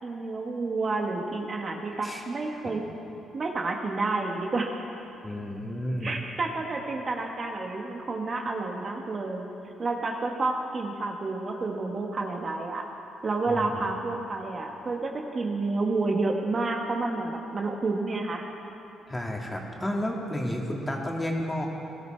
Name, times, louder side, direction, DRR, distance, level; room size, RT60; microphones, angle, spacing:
voice 1, 0.0-2.8 3.3-4.7 6.0-9.5 9.8-12.8 13.2-18.4, right 3 dB, 40° right, 1 dB, 1.4 m, -30 dB
voice 2, 5.2-6.2 13.5-13.9 19.1-21.7, left 1 dB, 15° left, 0 dB, 2.2 m, -32 dB
18.5 x 13.0 x 4.5 m, 2.8 s
cardioid pair, 90°, 0 cm